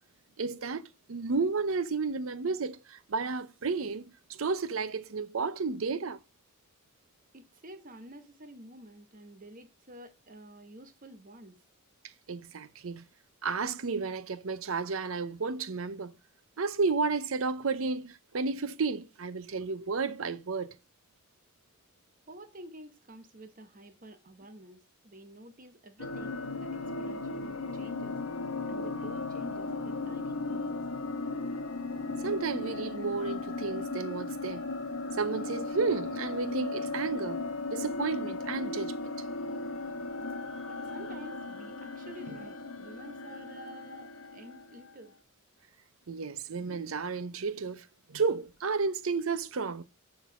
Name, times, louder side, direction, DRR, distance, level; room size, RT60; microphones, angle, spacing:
voice 1, 0.4-6.2 12.3-13.0 13.4-16.1 16.6-20.7 32.2-34.7 35.2-37.4 37.7-39.1 46.1-49.8, right 4 dB, 75° right, 0.7 m, -32 dB
voice 2, 7.3-11.6 22.3-30.9 40.7-45.1, right 1 dB, 40° right, 1.0 m, -50 dB
sound 1, 26.0-44.9, left 3 dB, 75° left, 1.1 m, -36 dB
7.0 x 3.9 x 6.0 m
head